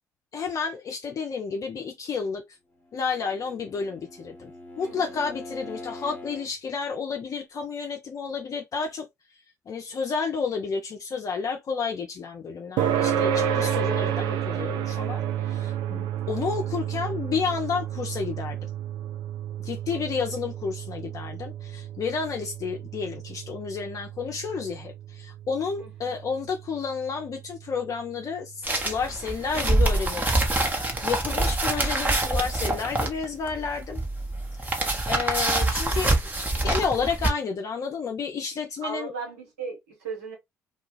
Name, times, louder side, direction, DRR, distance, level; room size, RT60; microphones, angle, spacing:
voice 1, 0.3-2.6 2.9-4.5 4.8-9.1 9.3-18.7 19.6-30.4 31.0-34.0 34.5-36.3 36.6-39.1, left 5 dB, 45° left, 0.5 m, -31 dB
Bowed string instrument, 2.8-6.5, left 2 dB, 25° left, 0.9 m, -43 dB
sound 1, 12.8-27.7, right 9 dB, 65° right, 0.4 m, -31 dB
voice 2, 25.8-26.1 38.8-40.3, right 5 dB, 85° right, 1.1 m, -37 dB
sound 2, 28.6-37.3, right 2 dB, 20° right, 0.9 m, -25 dB
2.3 x 2.3 x 3.0 m
hypercardioid pair, 50°, 8 cm